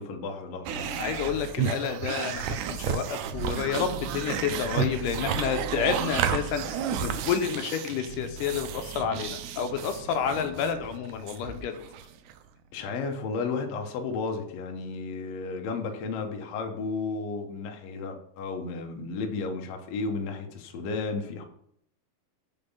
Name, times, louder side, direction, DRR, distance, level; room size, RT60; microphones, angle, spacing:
voice 1, 0.0-1.0 10.3-10.7 12.7-21.4, left 4 dB, 65° left, 3 dB, 1.8 m, -33 dB
sound 1, 0.7-12.4, right 8 dB, 80° right, 1.9 m, -32 dB
voice 2, 1.0-11.8, left 7 dB, 80° left, 7 dB, 2.2 m, -30 dB
5.3 x 5.0 x 5.5 m, 0.71 s
omnidirectional pair, 3.8 m